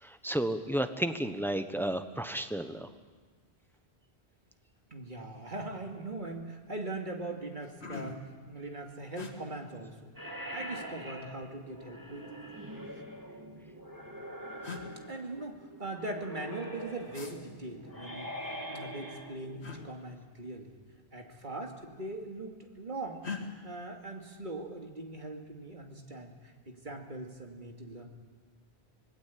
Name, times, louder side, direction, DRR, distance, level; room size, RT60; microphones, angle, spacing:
voice 1, 0.0-2.9, right 1 dB, ahead, 8 dB, 1.0 m, -32 dB
voice 2, 4.9-10.1 10.5-12.5 12.9-13.0 14.4-14.5 15.1-18.3 18.7-20.7 21.1-23.3 23.6-28.1, right 2 dB, 50° right, 2 dB, 2.7 m, -41 dB
sound 1, 5.5-5.7 6.0-6.5 7.0-7.1 7.4-8.4 9.1-9.3 10.6-11.2 12.4-13.2 14.1-14.2 14.6-14.9 17.1-17.3 19.6-19.8 21.2-21.4 21.7-22.3 23.2-23.4, left 5 dB, 80° left, 2.5 m, -43 dB
sound 2, 10.2-19.9, equal, 20° right, 2.5 m, -44 dB
26.0 x 19.5 x 8.6 m, 1.4 s
omnidirectional pair, 1.1 m